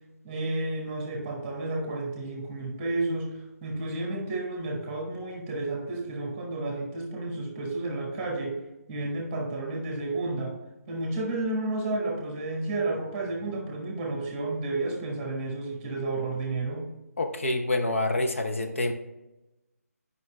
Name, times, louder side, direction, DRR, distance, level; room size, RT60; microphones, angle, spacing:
voice 1, 0.2-8.6 8.9-10.6 10.9-16.9, right 2 dB, 15° right, 1 dB, 1.2 m, -31 dB
voice 2, 17.2-18.9, left 2 dB, 55° left, 4 dB, 0.8 m, -27 dB
9.1 x 5.5 x 3.2 m, 0.99 s
figure-of-eight pair, 155°, 9 cm